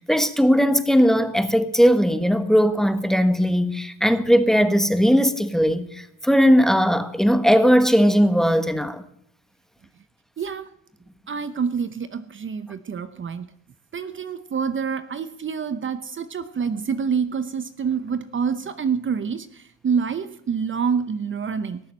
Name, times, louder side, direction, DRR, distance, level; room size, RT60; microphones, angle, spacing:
voice 1, 0.0-9.1, equal, ahead, 1.3 m, -18 dB
voice 2, 10.4-10.7 11.3-13.5 13.9-21.8, right 6 dB, 40° right, 0.8 m, -27 dB
18.5 x 7.2 x 8.7 m
cardioid pair, 90°, 30 cm